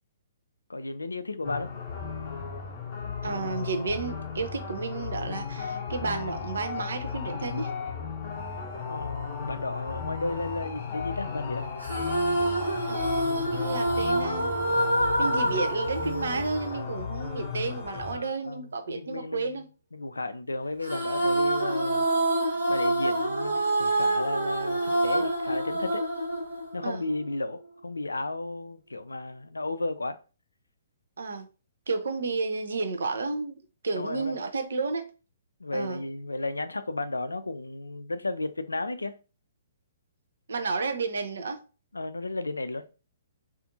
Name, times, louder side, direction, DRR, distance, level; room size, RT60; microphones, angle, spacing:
voice 1, 0.7-1.7 8.9-11.7 18.1-19.6 19.9-22.1 22.7-26.0 26.7-30.2 34.0-34.4 35.6-39.2 41.9-42.8, left 2 dB, 80° left, 0.3 m, -33 dB
sound 1, 1.4-18.1, left 6 dB, 40° left, 0.7 m, -35 dB
voice 2, 3.2-7.7 12.9-13.3 13.5-14.5 15.2-19.7 26.8-27.0 31.2-31.5 31.9-33.6 33.8-35.1 35.7-36.0 40.5-41.6, right 4 dB, 65° right, 0.4 m, -32 dB
sound 2, 11.8-17.3 20.8-27.2, right 1 dB, 85° right, 0.8 m, -27 dB
2.5 x 2.4 x 2.6 m
figure-of-eight pair, 120°, 0 cm